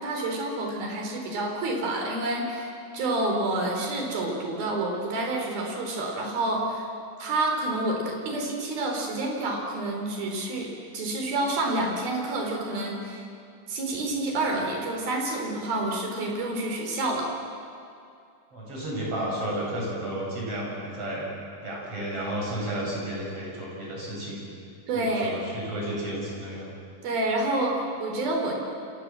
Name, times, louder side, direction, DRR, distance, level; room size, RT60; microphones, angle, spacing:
voice 1, 0.0-6.9 7.2-13.2 13.7-17.3 24.9-25.4 27.0-28.5, right 2 dB, 75° right, 1 dB, 5.9 m, -28 dB
voice 2, 18.5-21.3 21.6-24.4 24.9-26.7, right 1 dB, 40° right, -3 dB, 8.7 m, -32 dB
29.0 x 26.5 x 7.7 m, 2.5 s
omnidirectional pair, 4.3 m